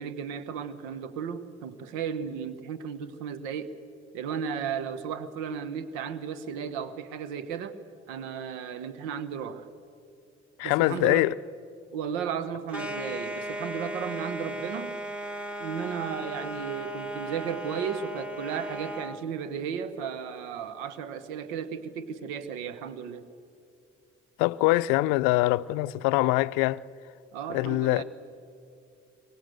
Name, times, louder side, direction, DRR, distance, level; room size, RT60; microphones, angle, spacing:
voice 1, 0.0-3.7 4.1-7.8 8.1-9.7 10.6-11.3 11.9-15.0 15.6-23.3 27.3-28.0, right 7 dB, 85° right, 1.1 m, -34 dB
voice 2, 10.6-11.3 24.4-26.8 27.5-28.0, left 19 dB, 80° left, 0.5 m, -24 dB
sound 1, 12.7-19.2, right 1 dB, 5° right, 1.9 m, -36 dB
23.5 x 19.5 x 7.8 m
hypercardioid pair, 45°, 31 cm